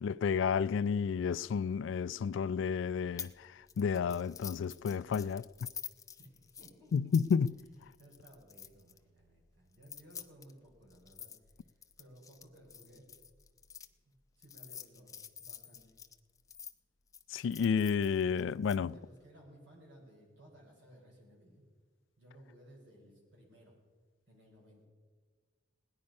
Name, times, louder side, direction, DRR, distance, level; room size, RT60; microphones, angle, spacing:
voice 1, 0.0-5.7 6.9-7.5 17.3-18.9, left 6 dB, 70° left, 0.3 m, -31 dB
sound 1, 3.2-3.4 3.7-9.0 9.7-13.9 14.4-16.7 17.1-18.8, left 7 dB, 20° left, 0.5 m, -48 dB
voice 2, 6.1-7.1 8.0-11.3 12.0-13.0 14.0-15.9 18.6-21.6 22.2-23.7 24.3-24.9, right 1 dB, 70° right, 4.9 m, -58 dB
18.0 x 10.5 x 5.3 m
head